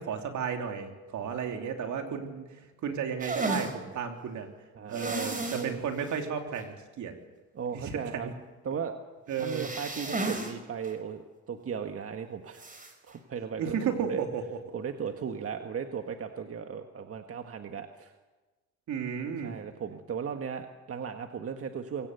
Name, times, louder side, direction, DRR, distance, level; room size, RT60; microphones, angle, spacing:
voice 1, 0.0-2.4 2.8-4.5 4.9-7.1 7.7-8.0 8.2-8.3 9.3-9.7 13.6-14.6 18.9-19.5, right 7 dB, 75° right, 4 dB, 3.3 m, -33 dB
voice 2, 1.8-2.2 4.7-5.9 7.5-8.3 8.6-8.9 9.4-12.6 13.1-14.2 14.7-18.1 19.4-22.1, right 7 dB, 50° right, 6 dB, 1.6 m, -37 dB
sound 1, 3.2-3.7 4.9-5.7 6.1-6.2 6.6-6.7 9.3-10.5 10.8-10.9 12.6-12.9, right 2 dB, 25° right, 4.6 m, -33 dB
24.0 x 17.5 x 8.1 m, 1.2 s
cardioid pair, 90°, 30 cm